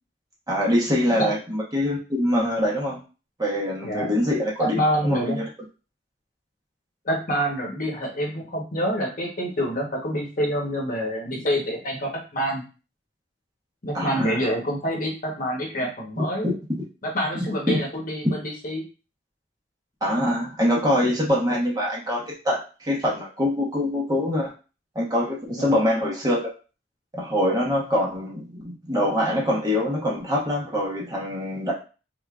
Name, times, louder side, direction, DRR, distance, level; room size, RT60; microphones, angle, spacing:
voice 1, 0.5-3.0 3.4-4.8 5.0-5.4 13.9-14.4 16.4-16.5 17.7-17.8 20.0-24.5 24.9-26.4 27.1-31.7, left 1 dB, 20° right, -4 dB, 1.0 m, -24 dB
voice 2, 3.8-4.1 4.6-5.4 7.0-12.6 13.8-16.5 17.0-18.8 25.5-25.7, equal, 45° left, 0 dB, 1.1 m, -27 dB
3.6 x 3.6 x 2.4 m, 0.33 s
head